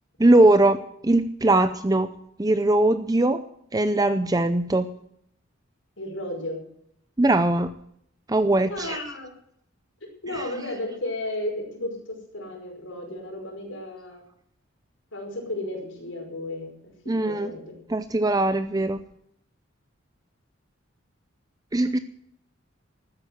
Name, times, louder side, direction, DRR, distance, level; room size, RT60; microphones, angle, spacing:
voice 1, 0.2-2.1 2.4-3.4 3.7-4.8 7.2-7.7 8.3-9.0 10.3-10.4 17.1-17.5 17.9-19.0 21.7-22.0, right 2 dB, 20° right, 11 dB, 0.6 m, -20 dB
voice 2, 6.0-6.6 8.6-9.3 10.2-12.0 12.3-14.2 15.1-16.9 17.3-17.8, left 1 dB, 70° left, 1 dB, 5.4 m, -33 dB
13.5 x 9.8 x 7.7 m, 0.69 s
head